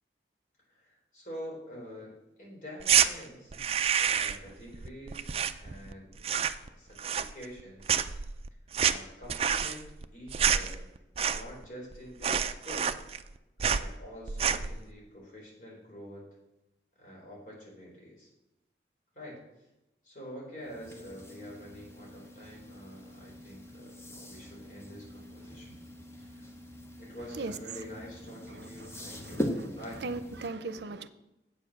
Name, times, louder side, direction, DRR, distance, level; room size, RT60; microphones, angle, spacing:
voice 1, 0.7-3.5 4.0-5.3 5.6-6.4 6.7-7.9 8.8-10.8 11.3-13.0 13.6-16.4 17.0-18.3 19.1-19.5 20.0-25.8 26.2-26.5 27.0-29.4 29.8-30.0, equal, 45° left, -3 dB, 4.2 m, -46 dB
sound 1, 2.8-3.1 3.5-4.5 4.7-5.9 6.2-6.7 7.0-7.6 7.9-11.6 11.9-12.0 12.2-13.3 13.6-13.9 14.3-14.7, right 8 dB, 35° right, 0.4 m, -28 dB
sound 2, 20.6-30.5, equal, 15° left, 0.9 m, -42 dB
voice 2, 28.5-29.4 30.0-31.1, right 3 dB, 75° right, 13 dB, 0.6 m, -39 dB
8.3 x 7.4 x 6.5 m, 0.94 s
head